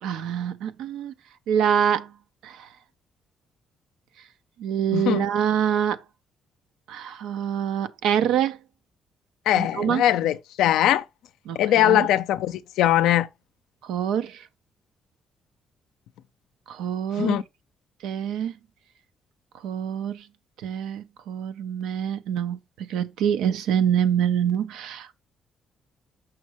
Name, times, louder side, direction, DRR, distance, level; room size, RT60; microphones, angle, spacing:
voice 1, 0.0-1.1 1.5-2.1 2.4-2.7 4.6-6.0 6.9-8.6 9.6-10.0 11.5-12.1 13.8-14.5 16.7-17.4 18.0-18.5 19.6-20.3 20.6-25.2, right 9 dB, 90° right, 0.6 m, -25 dB
voice 2, 4.9-5.3 9.5-11.0 11.6-13.3 17.2-17.4, left 12 dB, 90° left, 0.5 m, -21 dB
6.3 x 5.9 x 3.0 m
cardioid pair, 90°, 0 cm